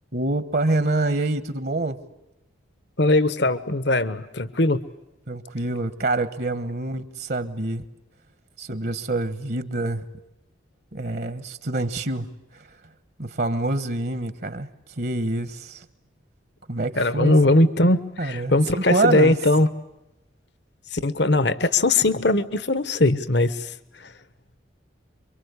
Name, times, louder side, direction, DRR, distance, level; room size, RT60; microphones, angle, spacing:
voice 1, 0.1-2.0 5.3-7.8 8.6-10.0 10.9-12.7 13.2-14.7 15.0-15.8 16.7-17.4 18.2-19.4, right 2 dB, 55° right, 13 dB, 1.4 m, -26 dB
voice 2, 3.0-4.8 17.0-19.7 20.9-23.7 24.0-24.1, left 2 dB, 60° left, 14 dB, 1.3 m, -20 dB
27.5 x 24.5 x 8.4 m, 0.94 s
head